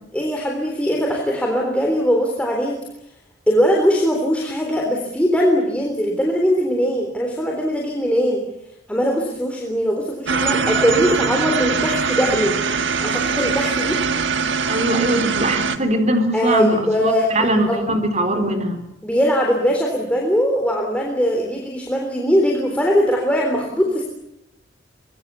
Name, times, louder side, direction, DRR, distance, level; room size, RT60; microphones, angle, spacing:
voice 1, 0.1-2.8 3.5-8.4 8.9-12.6 13.0-14.0 16.3-17.8 19.0-24.0, equal, 5° left, 0 dB, 3.7 m, -20 dB
sound 1, 10.3-15.8, right 5 dB, 75° right, 1.7 m, -22 dB
voice 2, 14.7-18.9, right 1 dB, 40° right, 6 dB, 3.8 m, -21 dB
25.0 x 22.5 x 7.0 m, 0.81 s
head